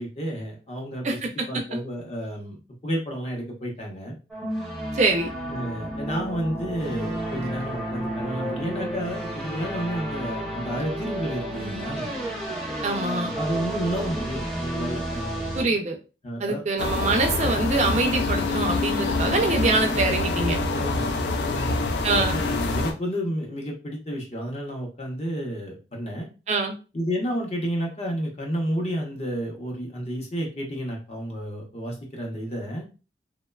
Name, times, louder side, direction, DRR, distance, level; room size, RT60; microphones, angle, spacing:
voice 1, 0.0-1.2 1.5-4.2 5.5-12.1 13.3-15.7 16.2-16.6 20.7-21.1 21.4-26.3 26.9-32.8, equal, 35° left, 0 dB, 0.7 m, -31 dB
voice 2, 1.0-1.5 4.9-5.3 12.8-13.3 15.5-16.0 16.4-20.6 22.0-22.4 26.5-26.8, right 3 dB, 40° right, 3 dB, 0.3 m, -24 dB
sound 1, 4.3-15.6, right 1 dB, ahead, 0.6 m, -31 dB
sound 2, 16.8-22.9, left 3 dB, 70° left, 0.4 m, -26 dB
2.9 x 2.1 x 2.2 m, 0.32 s
head